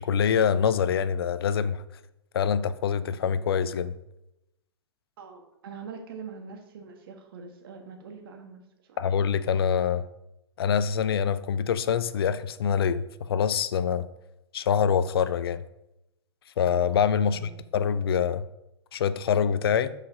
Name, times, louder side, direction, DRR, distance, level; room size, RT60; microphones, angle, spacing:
voice 1, 0.0-1.8 2.3-3.9 9.0-10.0 10.6-14.1 14.5-15.6 16.6-18.4 18.9-19.9, left 7 dB, 60° left, 0.4 m, -25 dB
voice 2, 5.2-9.0 17.3-17.6, right 5 dB, 55° right, 1.5 m, -44 dB
11.5 x 4.8 x 2.8 m
figure-of-eight pair, 105°, 14 cm